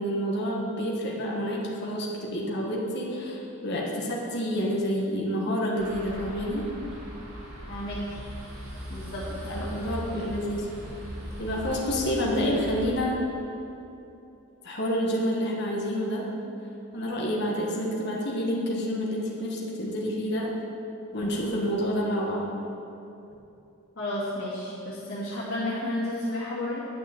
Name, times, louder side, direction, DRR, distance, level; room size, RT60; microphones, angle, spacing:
voice 1, 0.0-6.7 9.5-10.7 11.4-13.2 14.6-16.3 16.9-20.5 21.1-22.5, equal, 50° left, -3 dB, 1.6 m, -28 dB
sound 1, 5.8-12.9, equal, 85° right, 2.7 m, -39 dB
voice 2, 7.7-8.2 8.9-9.2 9.5-9.7 24.0-26.8, left 1 dB, 65° left, -12 dB, 2.7 m, -32 dB
9.6 x 6.2 x 7.8 m, 2.8 s
head